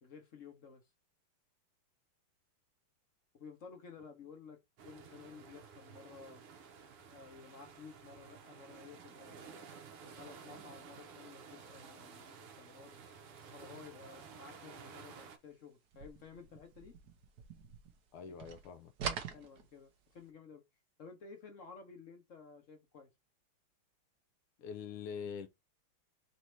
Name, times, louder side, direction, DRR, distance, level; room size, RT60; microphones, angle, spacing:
voice 1, 0.0-0.8 3.4-4.6 4.8-6.4 7.1-9.7 10.1-13.0 13.5-16.9 19.3-20.6 21.0-23.1, left 5 dB, 50° left, 1.0 m, -54 dB
sound 1, 4.8-15.4, right 6 dB, 80° right, 1.7 m, -53 dB
droping on chair, 15.9-18.1 18.4-20.2, right 6 dB, 60° right, 1.2 m, -44 dB
voice 2, 18.1-18.9 24.6-25.5, left 7 dB, 80° left, 1.5 m, -44 dB
4.2 x 2.7 x 4.4 m
omnidirectional pair, 2.4 m